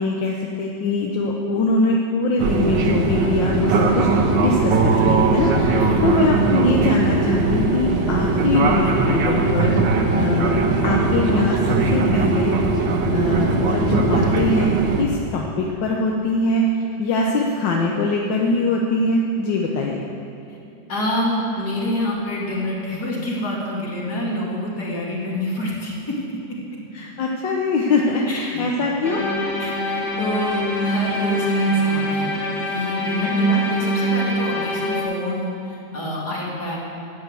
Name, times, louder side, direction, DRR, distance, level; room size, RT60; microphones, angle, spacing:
voice 1, 0.0-4.1 4.4-9.8 10.1-12.6 13.1-16.6 17.0-20.0 26.9-29.2 33.2-33.6, left 2 dB, 85° left, -1 dB, 1.7 m, -22 dB
Fixed-wing aircraft airplane, 2.4-15.0, right 3 dB, 80° right, 1.9 m, -19 dB
voice 2, 5.7-6.2 20.9-26.6 28.3-28.6 29.6-32.3 32.7-36.8, left 1 dB, 60° left, -4 dB, 3.2 m, -27 dB
sound 1, 29.0-35.0, right 1 dB, 30° left, 2.0 m, -23 dB
12.5 x 8.9 x 8.0 m, 2.6 s
omnidirectional pair, 1.9 m